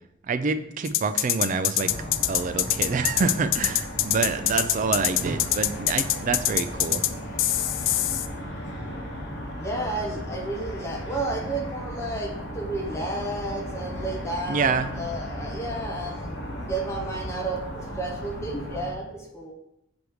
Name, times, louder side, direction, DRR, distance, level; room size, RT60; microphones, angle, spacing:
voice 1, 0.2-1.9 2.3-7.0 14.5-14.9, right 4 dB, 40° right, 11 dB, 0.4 m, -27 dB
sound 1, 0.9-7.1 7.4-8.3, left 13 dB, 75° left, 0.4 m, -24 dB
sound 2, 1.8-18.9, equal, 60° left, 1.1 m, -36 dB
voice 2, 9.6-19.5, right 2 dB, 15° left, 0 dB, 0.8 m, -32 dB
6.2 x 3.5 x 4.7 m, 0.81 s
head